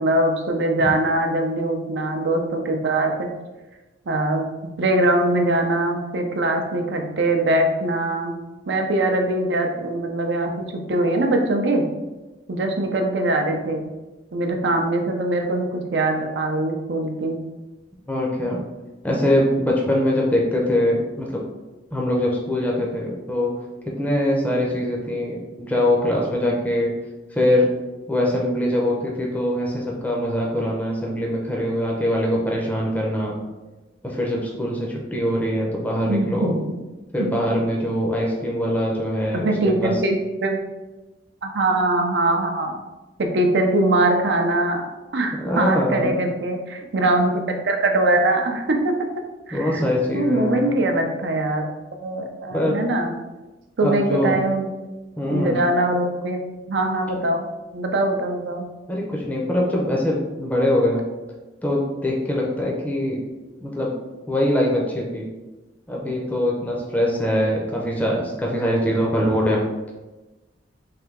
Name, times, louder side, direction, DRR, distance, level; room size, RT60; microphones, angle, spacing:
voice 1, 0.0-3.3 4.1-4.5 4.8-8.4 8.7-11.8 12.5-13.9 14.3-17.4 36.1-36.5 37.2-37.3 39.3-40.6 41.4-42.8 43.2-44.9 45.1-48.9 49.5-49.8 50.1-51.7 52.0-53.1 53.8-54.7 55.3-56.4 56.7-57.5 57.7-58.7, right 2 dB, 75° right, 4 dB, 0.5 m, -22 dB
voice 2, 18.1-18.6 19.0-21.4 21.9-23.5 24.0-26.9 27.3-27.7 28.1-33.4 34.0-36.6 37.1-39.5 39.8-40.0 45.3-46.2 49.5-50.8 52.5-52.8 53.8-54.4 55.2-55.6 58.9-61.0 61.6-63.2 63.6-63.9 64.3-65.3 65.9-69.6, left 1 dB, 10° left, -2 dB, 0.5 m, -23 dB
3.3 x 2.7 x 3.7 m, 1.1 s
head